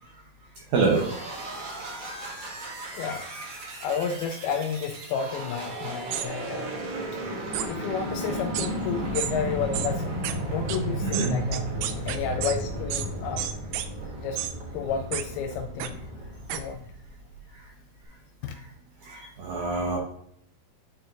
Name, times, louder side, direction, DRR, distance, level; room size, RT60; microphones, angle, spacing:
sound 1, 0.7-17.4, right 1 dB, 50° right, 1.9 m, -34 dB
voice 1, 0.7-1.1 11.0-11.3 19.0-20.0, right 4 dB, 70° right, -1 dB, 1.9 m, -25 dB
voice 2, 2.9-3.4 3.8-6.7 7.7-10.2 10.5-11.7 12.1-13.5 14.2-14.4 14.7-16.0 16.5-16.8 18.4-18.5, left 7 dB, 85° left, 4 dB, 2.5 m, -31 dB
sound 2, 6.1-6.3 7.5-7.7 8.5-8.7 9.2-9.3 9.7-9.9 10.2-10.3 10.7-10.8 11.1-12.6 12.9-13.1 13.4-13.9 14.4-14.5 15.1-15.2 15.8-15.9 16.5-16.6, right 11 dB, 85° right, 2.5 m, -30 dB
9.4 x 4.4 x 2.6 m, 0.68 s
omnidirectional pair, 4.3 m